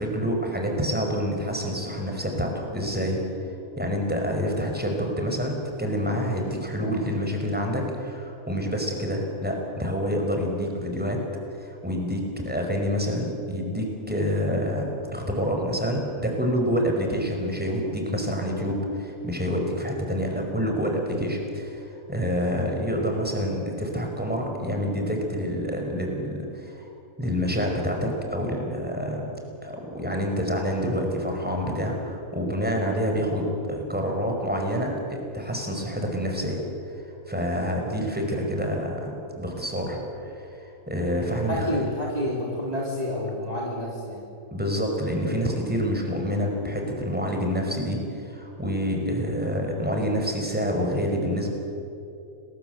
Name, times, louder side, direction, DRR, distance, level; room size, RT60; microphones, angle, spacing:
voice 1, 0.0-3.2 3.8-11.2 11.6-26.9 27.2-29.3 29.6-36.6 36.9-41.8 44.5-51.5, equal, 5° right, 1 dB, 5.2 m, -27 dB
voice 2, 41.2-44.2, left 1 dB, 25° right, -4 dB, 3.9 m, -29 dB
29.5 x 21.0 x 8.2 m, 2.7 s
omnidirectional pair, 1.5 m